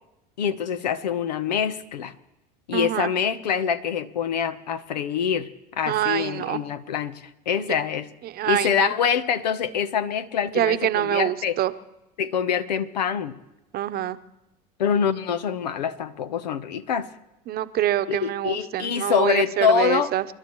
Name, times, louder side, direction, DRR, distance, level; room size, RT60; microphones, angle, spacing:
voice 1, 0.4-2.1 2.7-8.1 8.5-11.6 12.2-13.4 14.8-17.1 18.1-20.1, left 8 dB, 85° left, 13 dB, 0.9 m, -25 dB
voice 2, 2.7-3.1 5.9-6.6 7.6-7.7 8.2-8.9 10.5-11.7 13.7-14.2 17.5-20.2, right 13 dB, 45° right, 11 dB, 0.9 m, -25 dB
29.0 x 12.0 x 3.1 m, 0.94 s
hypercardioid pair, 80°, 21 cm